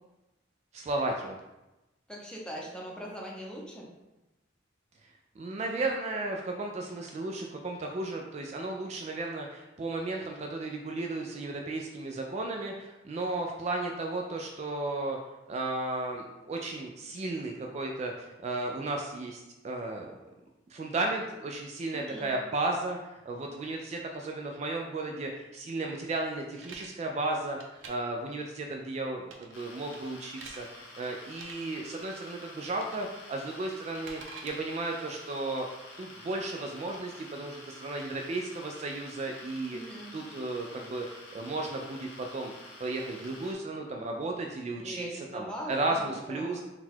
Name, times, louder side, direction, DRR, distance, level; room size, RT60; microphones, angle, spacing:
voice 1, 0.7-1.4 5.4-15.2 15.5-20.1 20.7-35.7 36.0-42.5 42.8-46.6, right 2 dB, 35° right, 1 dB, 0.3 m, -34 dB
voice 2, 2.1-3.9 21.9-22.3 39.7-40.1 44.8-46.6, equal, 5° left, -3 dB, 0.7 m, -41 dB
sound 1, 26.2-26.9 27.5-27.9 29.2-29.6 29.9-30.6 31.3-31.5 32.8-33.1 33.4-34.6, right 4 dB, 85° right, 0.6 m, -47 dB
sound 2, 29.5-43.5, left 2 dB, 85° left, 0.9 m, -49 dB
4.0 x 2.2 x 4.4 m, 1.0 s
head